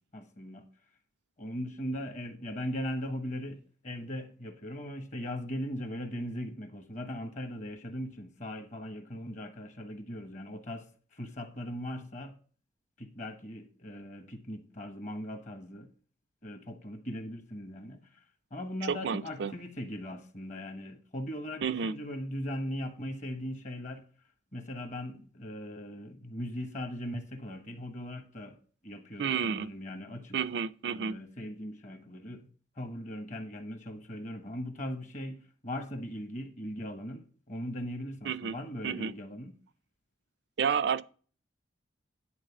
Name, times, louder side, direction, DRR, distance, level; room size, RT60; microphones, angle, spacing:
voice 1, 0.1-0.7 1.4-12.3 13.0-15.9 16.4-18.2 18.5-24.0 24.5-28.6 28.8-30.4 30.9-32.5 32.8-39.5, equal, 40° left, 1.2 m, -39 dB
voice 2, 18.9-19.5 21.6-21.9 29.2-29.7 30.3-31.2 38.2-38.6 38.8-39.1 40.6-41.0, right 6 dB, 60° right, 0.4 m, -30 dB
10.5 x 3.9 x 7.0 m
head